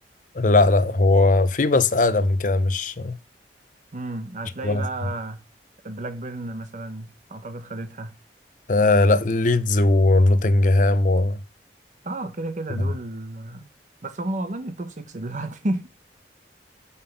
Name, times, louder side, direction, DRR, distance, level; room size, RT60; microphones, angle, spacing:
voice 1, 0.4-3.1 4.6-4.8 8.7-11.4, left 2 dB, 45° left, 0.7 m, -19 dB
voice 2, 3.9-5.4 5.8-8.1 12.0-13.7 14.0-15.9, right 1 dB, 45° right, 0.8 m, -32 dB
5.8 x 5.6 x 6.9 m
head